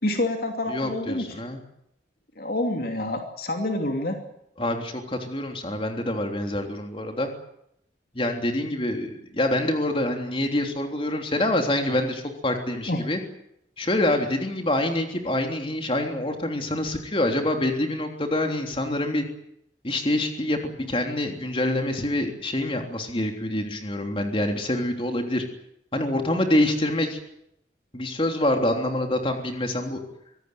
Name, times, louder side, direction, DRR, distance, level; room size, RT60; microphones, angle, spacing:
voice 1, 0.0-1.2 2.4-4.2 12.9-13.1, left 1 dB, 55° left, 4 dB, 2.8 m, -27 dB
voice 2, 0.7-1.6 4.6-7.3 8.1-13.2 13.8-19.2 19.8-20.6 20.9-25.4 25.9-27.2 27.9-30.0, left 1 dB, 30° left, 4 dB, 3.3 m, -26 dB
25.0 x 17.5 x 9.4 m, 0.77 s
head